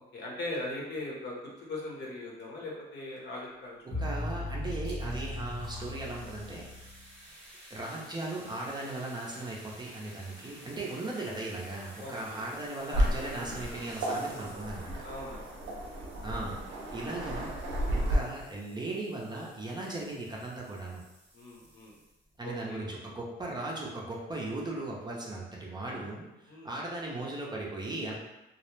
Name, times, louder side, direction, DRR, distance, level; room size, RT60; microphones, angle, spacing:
voice 1, 0.1-4.0 12.0-12.5 15.0-15.6 21.3-22.0 22.4-22.8 26.5-26.7, left 2 dB, 60° left, -3 dB, 0.9 m, -40 dB
voice 2, 3.8-6.6 7.7-15.1 16.2-21.0 22.4-28.1, right 2 dB, 20° right, -3 dB, 0.5 m, -38 dB
sound 1, 3.9-7.0, left 1 dB, 20° left, 0.7 m, -37 dB
sound 2, 4.3-4.4 4.6-22.4, right 1 dB, 5° right, 1.0 m, -53 dB
Waves surf, 12.9-18.1, right 1 dB, 70° right, 0.6 m, -33 dB
2.3 x 2.0 x 3.1 m, 0.99 s
cardioid pair, 90°, 20 cm